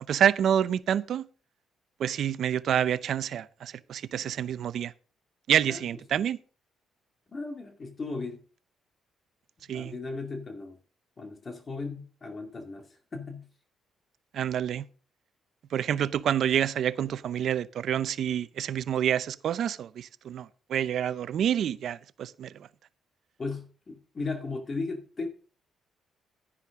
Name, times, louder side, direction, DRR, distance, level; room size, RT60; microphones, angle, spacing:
voice 1, 0.1-1.3 2.0-4.9 5.5-6.4 9.7-9.9 14.3-14.9 15.7-22.5, right 9 dB, 65° right, 0.6 m, -28 dB
voice 2, 7.3-8.4 9.7-10.8 11.2-13.4 23.4-25.3, left 3 dB, 35° left, 2.2 m, -36 dB
10.5 x 10.0 x 3.7 m
cardioid pair, 90°, 0 cm